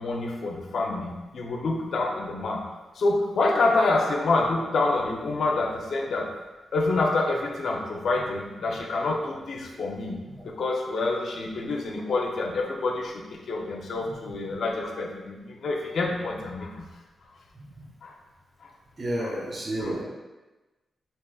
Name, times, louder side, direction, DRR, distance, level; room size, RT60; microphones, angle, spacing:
voice 1, 0.0-2.7 2.9-6.3 6.7-10.2 10.4-16.8 18.0-18.1 19.2-19.4 19.8-20.0, left 3 dB, 70° left, 0 dB, 0.6 m, -27 dB
voice 2, 19.0-20.0, right 1 dB, 40° right, -3 dB, 0.8 m, -30 dB
4.6 x 2.9 x 2.3 m, 1.1 s
cardioid pair, 75°, 0 cm